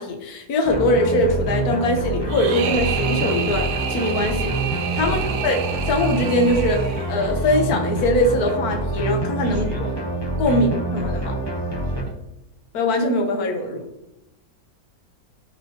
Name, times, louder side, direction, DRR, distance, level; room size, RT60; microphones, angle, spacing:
voice 1, 0.0-4.5 4.9-5.6 5.9-9.9 10.4-11.3 12.7-13.8, left 1 dB, 60° left, 3 dB, 1.7 m, -22 dB
sound 1, 0.6-12.0, right 2 dB, 15° left, 1.0 m, -26 dB
sound 2, 2.3-7.4, right 8 dB, 70° right, 1.3 m, -29 dB
voice 2, 9.4-10.0 10.4-10.7 11.8-12.2, right 1 dB, 40° right, 0 dB, 2.0 m, -38 dB
12.5 x 5.0 x 3.1 m, 0.89 s
omnidirectional pair, 1.9 m